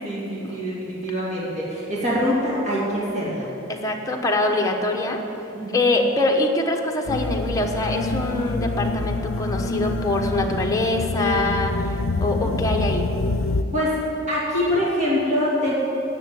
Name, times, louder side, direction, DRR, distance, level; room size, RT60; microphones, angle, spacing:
voice 1, 0.0-3.5 5.5-5.9 12.1-12.5 13.7-14.0 14.3-15.7, equal, 35° right, -6 dB, 2.7 m, -24 dB
voice 2, 3.7-5.2 5.7-13.0, left 2 dB, 15° left, 1 dB, 1.1 m, -24 dB
sound 1, 7.1-13.6, left 3 dB, 75° left, 0.5 m, -26 dB
10.0 x 7.6 x 9.3 m, 2.9 s
head